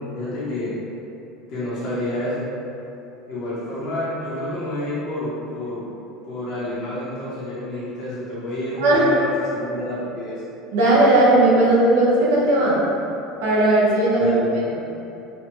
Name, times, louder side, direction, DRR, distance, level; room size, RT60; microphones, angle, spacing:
voice 1, 0.1-0.8 1.5-2.5 3.3-5.9 6.2-10.4 14.2-14.7, left 1 dB, 45° left, -10 dB, 0.7 m, -29 dB
voice 2, 10.7-12.8 13.4-14.4, right 1 dB, 90° right, -5 dB, 0.7 m, -16 dB
3.1 x 2.1 x 2.9 m, 2.9 s
cardioid pair, 155°, 0 cm